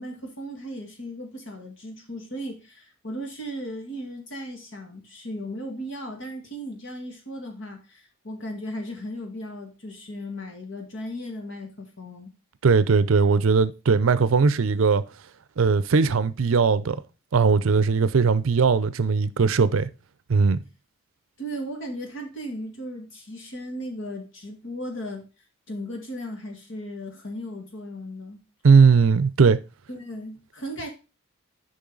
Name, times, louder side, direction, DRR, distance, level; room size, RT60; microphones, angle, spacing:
voice 1, 0.0-12.3 21.4-25.2 25.7-28.4 29.9-30.9, equal, 60° left, 1.9 m, -36 dB
voice 2, 12.6-15.0 15.6-17.0 17.3-19.9 20.3-20.6 28.6-29.6, right 5 dB, 70° right, 0.5 m, -19 dB
7.0 x 5.3 x 3.8 m
head